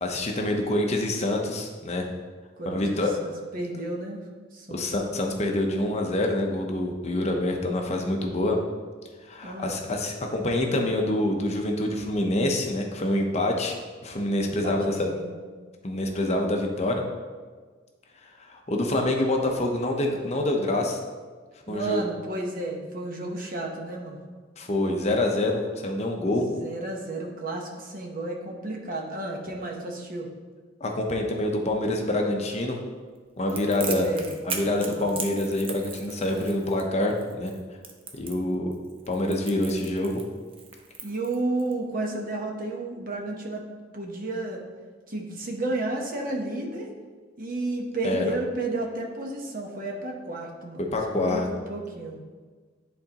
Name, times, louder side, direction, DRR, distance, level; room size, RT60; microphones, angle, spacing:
voice 1, 0.0-2.1 2.7-3.1 4.7-8.6 9.3-13.7 14.0-15.1 15.8-17.0 18.4-21.0 21.7-22.0 24.6-26.5 30.8-32.8 33.4-34.1 34.5-37.5 38.1-38.7 39.1-40.2 48.0-48.2 50.9-51.5, left 1 dB, 35° left, 2 dB, 0.7 m, -26 dB
voice 2, 2.6-4.2 4.5-4.9 9.4-9.8 14.6-15.4 21.7-24.2 26.3-30.3 33.9-34.3 34.8-35.1 41.0-43.6 43.9-44.6 45.1-46.9 47.4-50.8 51.1-52.2, right 2 dB, 50° right, 1 dB, 1.0 m, -32 dB
Crackle, 33.5-41.7, right 5 dB, 30° right, 0.6 m, -38 dB
10.5 x 3.9 x 2.9 m, 1.5 s
head